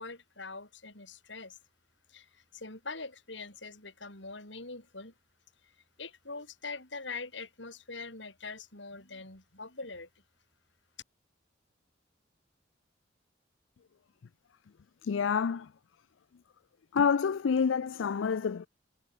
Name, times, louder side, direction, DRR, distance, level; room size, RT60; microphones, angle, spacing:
voice 1, 0.0-1.6 2.1-5.1 6.0-10.1, left 3 dB, 70° left, 7.4 m, -43 dB
voice 2, 15.0-15.7 16.9-18.7, left 6 dB, 85° left, 0.4 m, -28 dB
head